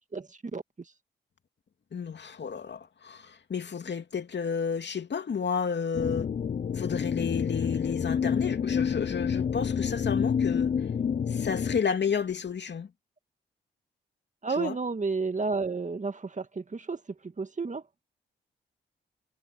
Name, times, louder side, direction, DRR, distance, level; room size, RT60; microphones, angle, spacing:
voice 1, 0.1-0.9 14.4-17.8, right 4 dB, 35° right, 1.9 m, -32 dB
voice 2, 1.9-6.3 6.7-10.7 11.3-12.9 14.6-14.7, left 6 dB, 55° left, 2.7 m, -31 dB
sound 1, 5.9-11.8, left 7 dB, 40° left, 0.5 m, -28 dB
hypercardioid pair, 40°, 21 cm